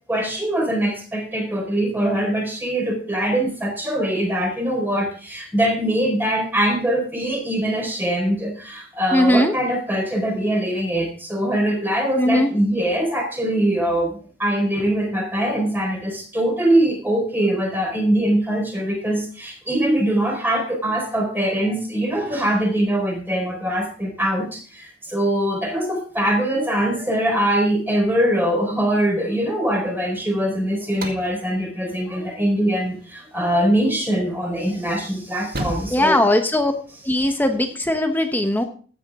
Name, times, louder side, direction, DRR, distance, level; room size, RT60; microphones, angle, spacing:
voice 1, 0.1-36.2, right 1 dB, 10° right, 1 dB, 4.4 m, -22 dB
voice 2, 9.1-9.5 12.2-12.5 35.9-36.7 37.1-38.6, left 1 dB, 10° left, 6 dB, 1.1 m, -19 dB
sound 1, 30.8-37.2, right 1 dB, 55° right, 2.1 m, -37 dB
15.0 x 9.8 x 3.7 m, 0.41 s
head